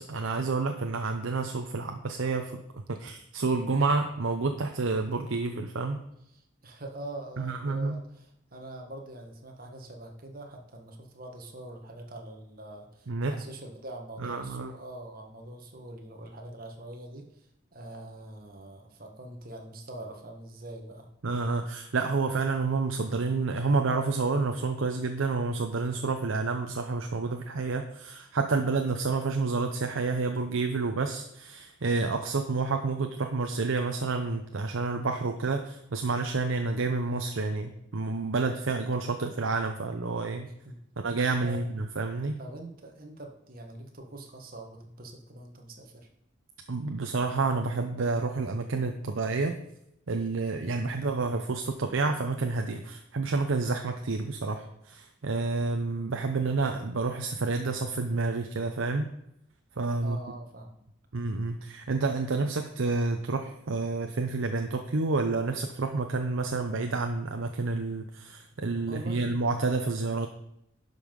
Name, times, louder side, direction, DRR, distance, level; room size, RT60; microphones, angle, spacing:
voice 1, 0.0-6.0 7.4-8.0 13.1-13.3 14.2-14.7 21.2-40.5 41.0-42.4 46.7-49.6 50.1-59.1 59.8-60.2 61.1-70.3, right 3 dB, 80° right, 5 dB, 0.7 m, -29 dB
voice 2, 6.3-21.1 40.6-40.8 41.4-41.6 42.4-46.1 60.0-60.8 68.9-69.4, right 1 dB, 45° right, 3 dB, 1.4 m, -44 dB
11.0 x 5.5 x 5.3 m, 0.81 s
head